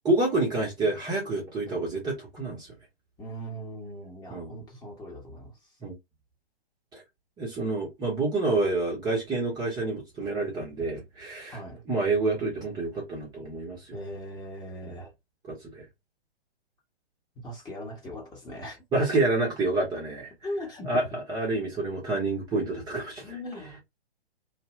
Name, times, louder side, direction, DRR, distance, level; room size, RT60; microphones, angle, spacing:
voice 1, 0.0-2.7 4.3-4.5 5.8-5.9 6.9-7.0 7.4-11.6 11.9-14.0 14.9-15.0 15.5-15.8 18.9-20.3 20.9-23.3, right 2 dB, 15° right, 0.8 m, -28 dB
voice 2, 3.2-5.5 11.5-11.8 13.9-15.1 17.4-18.8 20.4-21.1 23.2-23.8, equal, 15° left, 1.0 m, -39 dB
2.7 x 2.2 x 3.1 m
figure-of-eight pair, 125°, 31 cm